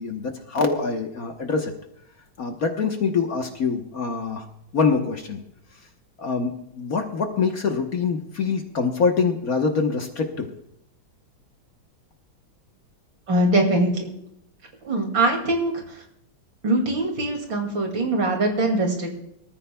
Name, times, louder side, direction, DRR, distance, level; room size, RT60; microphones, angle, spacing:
voice 1, 0.0-1.7 2.4-4.4 4.7-5.4 6.2-10.5, left 5 dB, 50° left, 3 dB, 1.4 m, -24 dB
voice 2, 13.3-14.1 14.8-15.7 16.6-19.2, right 2 dB, 70° right, 2 dB, 3.1 m, -22 dB
24.5 x 14.0 x 2.3 m, 0.78 s
omnidirectional pair, 2.2 m